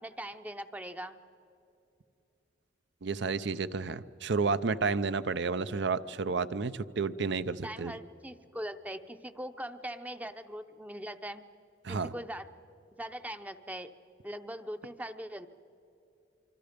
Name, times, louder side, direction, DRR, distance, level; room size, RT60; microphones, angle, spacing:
voice 1, 0.0-1.2 7.6-11.5 11.9-12.5 13.0-13.9 14.2-15.5, equal, 10° right, 10 dB, 0.7 m, -41 dB
voice 2, 3.0-7.9 11.8-12.1, right 4 dB, 65° right, 14 dB, 0.6 m, -31 dB
25.5 x 25.0 x 5.2 m, 2.7 s
head